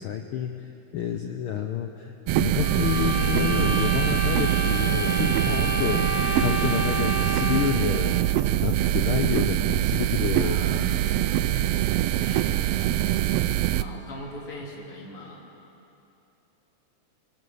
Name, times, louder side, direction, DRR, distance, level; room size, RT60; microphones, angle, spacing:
voice 1, 0.0-8.3 8.6-10.6, left 9 dB, 75° left, 5 dB, 1.2 m, -29 dB
sound 1, 2.3-13.8, right 14 dB, 80° right, 1.4 m, -24 dB
sound 2, 2.6-7.9, equal, 5° right, 3.0 m, -30 dB
voice 2, 10.4-11.5 12.2-13.1 13.7-15.4, left 1 dB, 50° left, -1 dB, 3.5 m, -40 dB
24.5 x 17.5 x 7.0 m, 2.8 s
omnidirectional pair, 3.3 m